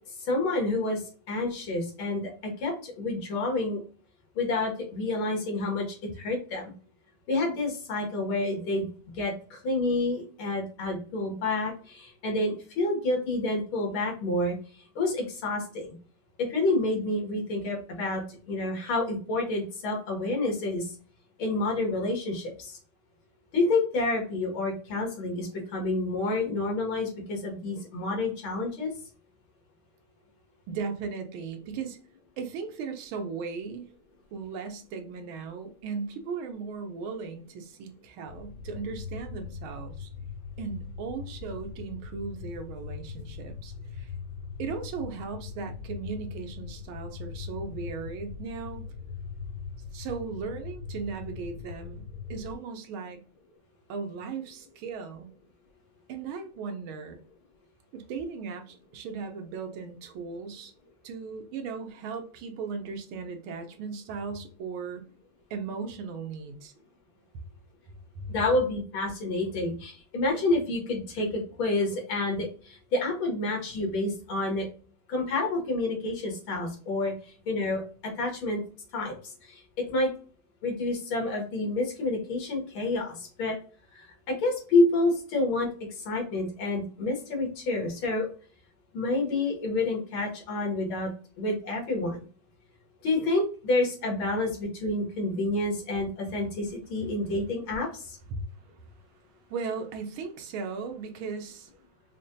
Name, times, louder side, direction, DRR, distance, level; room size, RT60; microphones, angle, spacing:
voice 1, 0.3-1.0 1.3-2.3 2.6-3.8 4.4-6.6 7.3-8.9 9.2-14.6 15.0-15.9 16.5-20.9 21.4-22.8 23.5-28.9 68.3-74.7 75.1-77.1 77.5-77.8 78.2-78.6 78.9-79.2 79.8-80.1 80.6-83.6 84.3-85.7 86.1-88.3 88.9-91.1 91.4-92.2 93.0-98.2, left 2 dB, 90° left, 2.2 m, -28 dB
voice 2, 30.7-32.0 32.4-33.8 34.3-40.1 40.6-44.1 44.6-48.9 49.9-52.0 52.3-53.2 53.9-55.3 56.1-57.2 57.9-60.7 61.0-65.0 65.5-66.7 68.1-68.4 98.3-98.4 99.5-101.7, right 5 dB, 90° right, 1.6 m, -37 dB
sound 1, 38.3-52.5, left 5 dB, 75° left, 0.8 m, -40 dB
5.1 x 2.2 x 2.6 m
omnidirectional pair, 2.2 m